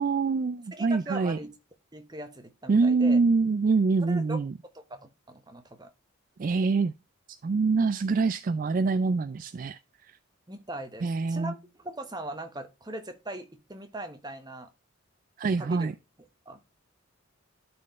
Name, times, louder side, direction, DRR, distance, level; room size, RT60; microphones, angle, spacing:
voice 1, 0.0-1.4 2.7-4.5 6.4-6.9 7.3-9.8 10.1-10.2 11.0-11.5 15.4-15.9, right 4 dB, 40° right, 0.3 m, -25 dB
voice 2, 0.7-1.5 1.9-3.2 4.0-4.4 4.7-5.9 10.5-14.7 15.6-15.9 16.5-16.6, right 1 dB, 20° right, 1.1 m, -40 dB
12.0 x 4.4 x 3.1 m
head